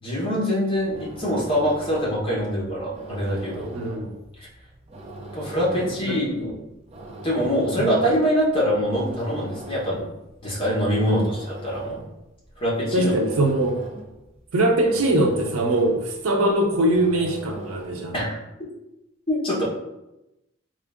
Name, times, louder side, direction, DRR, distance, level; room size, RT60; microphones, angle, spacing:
voice 1, 0.0-3.7 5.3-6.6 7.2-10.1 10.4-12.1 12.6-13.1 18.1-18.4 19.3-19.6, equal, 25° left, -5 dB, 1.1 m, -24 dB
sound 1, 0.7-18.3, right 1 dB, 30° right, 0.5 m, -41 dB
voice 2, 3.7-4.2 6.1-6.2 7.8-7.9 11.0-11.3 12.9-13.8 14.5-18.1, right 1 dB, 85° right, 2 dB, 0.6 m, -22 dB
3.7 x 2.5 x 3.5 m, 0.93 s
head